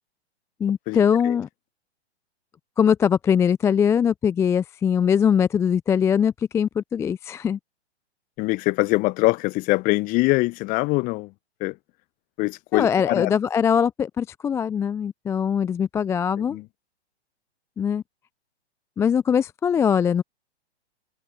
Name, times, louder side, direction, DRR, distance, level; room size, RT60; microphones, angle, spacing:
voice 1, 0.6-1.5 2.8-7.6 12.7-16.6 17.8-18.0 19.0-20.2, left 7 dB, 10° left, 0.5 m, -21 dB
voice 2, 8.4-11.3 11.6-11.8 12.4-13.3 16.5-16.6, left 23 dB, 25° left, 0.9 m, -23 dB
figure-of-eight pair, 110°, 34 cm